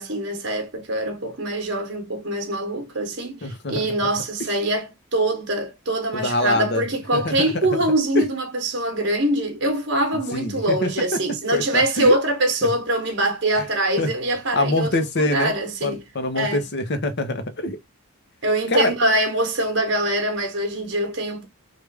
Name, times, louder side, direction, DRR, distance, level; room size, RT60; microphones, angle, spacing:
voice 1, 0.0-16.0 16.3-16.6 18.4-21.5, right 1 dB, 55° right, 1.0 m, -23 dB
voice 2, 3.4-3.9 6.1-6.8 7.1-7.7 8.2-8.3 10.3-10.9 11.5-12.2 13.6-13.7 14.0-14.1 14.5-15.5 15.8-17.8 18.7-18.9, left 2 dB, 50° left, 0.7 m, -24 dB
3.3 x 2.4 x 3.2 m
head